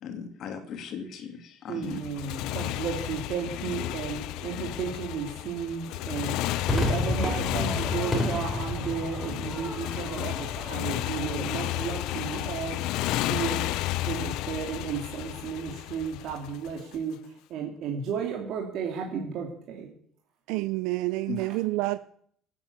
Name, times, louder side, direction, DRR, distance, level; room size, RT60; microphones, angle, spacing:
voice 1, 0.0-2.0 21.3-21.4, left 7 dB, 45° left, 2.6 m, -37 dB
voice 2, 1.7-6.4 6.7-12.8 13.3-13.7 14.1-17.2 17.5-19.9, right 6 dB, 50° right, 2.7 m, -33 dB
Motorcycle, 1.8-17.0, left 16 dB, 65° left, 0.7 m, -32 dB
Crowd / Fireworks, 6.7-13.2, left 1 dB, 10° left, 3.7 m, -33 dB
voice 3, 20.5-22.0, right 19 dB, 80° right, 0.5 m, -28 dB
16.5 x 9.0 x 8.3 m
cardioid pair, 165°, 0 cm